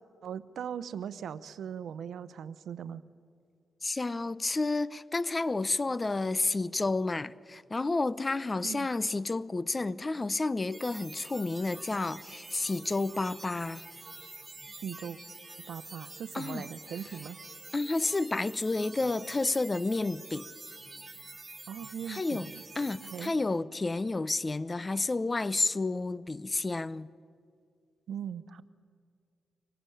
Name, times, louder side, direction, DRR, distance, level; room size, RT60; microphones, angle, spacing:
voice 1, 0.2-3.0 8.6-8.9 14.8-15.2 15.6-17.4 21.7-22.6 23.0-23.3 28.1-28.6, right 8 dB, 80° right, 0.8 m, -39 dB
voice 2, 3.8-13.8 16.3-16.6 17.7-20.5 22.1-22.5 22.8-27.1, left 3 dB, 30° left, 0.7 m, -30 dB
sound 1, 10.7-23.3, right 3 dB, 25° right, 5.3 m, -47 dB
24.5 x 17.5 x 9.9 m
cardioid pair, 60°, 0 cm